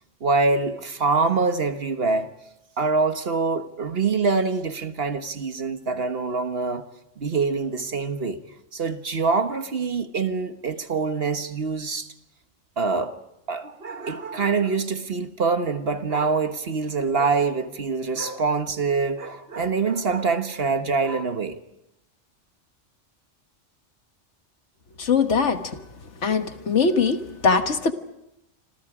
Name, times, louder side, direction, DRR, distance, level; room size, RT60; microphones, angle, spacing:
voice 1, 0.2-2.3 2.8-6.8 7.2-8.4 8.7-12.1 12.8-13.2 13.5-21.6, right 4 dB, 55° right, 1.5 m, -25 dB
voice 2, 25.0-25.8 26.2-27.9, left 5 dB, 70° left, 1.7 m, -22 dB
29.0 x 26.0 x 4.9 m
omnidirectional pair, 1.3 m